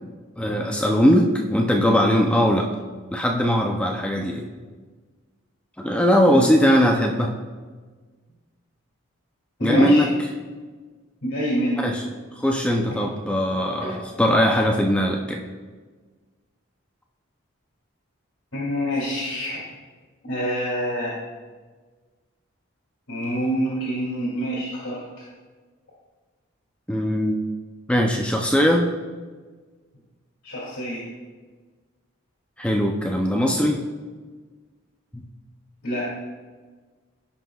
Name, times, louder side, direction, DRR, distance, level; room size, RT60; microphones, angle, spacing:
voice 1, 0.4-2.7 3.1-4.5 5.8-7.3 9.6-10.1 11.8-12.0 12.4-15.4 26.9-27.4 27.9-28.9 32.6-33.8 35.1-35.3, equal, 5° left, 1 dB, 0.5 m, -20 dB
voice 2, 9.6-10.0 11.2-11.8 18.5-19.6 20.2-21.1 23.1-25.3 30.4-31.1 35.8-36.1, equal, 80° left, -7 dB, 2.5 m, -26 dB
16.0 x 5.9 x 2.3 m, 1.4 s
head